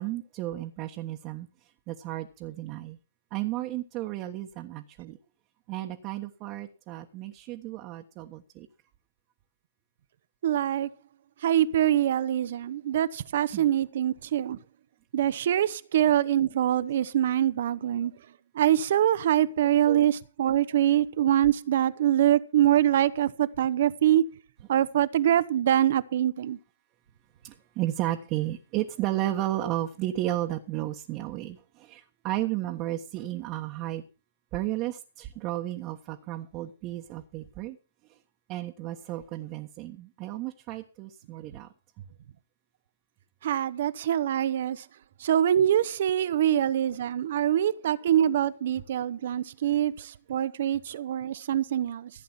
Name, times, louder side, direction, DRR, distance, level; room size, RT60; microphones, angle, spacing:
voice 1, 0.0-1.5 1.9-3.0 3.3-5.2 5.7-8.7 13.5-13.7 19.9-20.0 27.4-34.0 34.5-37.8 38.5-41.7, right 15 dB, 35° right, 1.4 m, -33 dB
voice 2, 10.4-10.9 11.4-14.6 15.1-18.1 18.5-24.2 24.7-26.6 43.4-44.8 45.2-52.1, right 11 dB, 60° right, 1.0 m, -24 dB
15.5 x 8.3 x 5.8 m
figure-of-eight pair, 115°, 0 cm